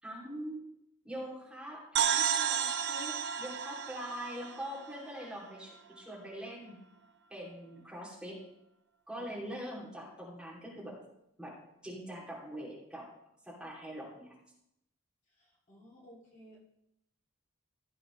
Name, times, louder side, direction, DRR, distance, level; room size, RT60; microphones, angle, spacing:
voice 1, 0.0-0.6 1.0-6.8 7.3-8.4 9.1-10.9 11.4-11.5 11.8-13.0 13.4-14.3, equal, 5° right, -6 dB, 2.8 m, -43 dB
sound 1, 2.0-5.6, right 8 dB, 55° right, 0.6 m, -32 dB
voice 2, 15.3-16.6, equal, 35° left, -5 dB, 2.5 m, -57 dB
15.5 x 7.8 x 3.2 m, 0.80 s
head